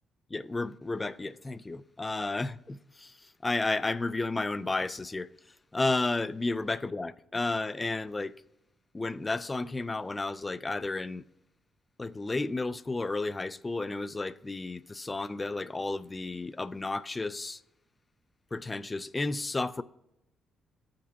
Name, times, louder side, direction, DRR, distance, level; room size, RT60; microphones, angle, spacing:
voice 1, 0.3-5.3 5.7-8.3 8.9-11.2 12.0-17.6 18.5-19.8, left 3 dB, 20° left, 0.3 m, -32 dB
14.5 x 5.2 x 2.7 m
cardioid pair, 90°, 0 cm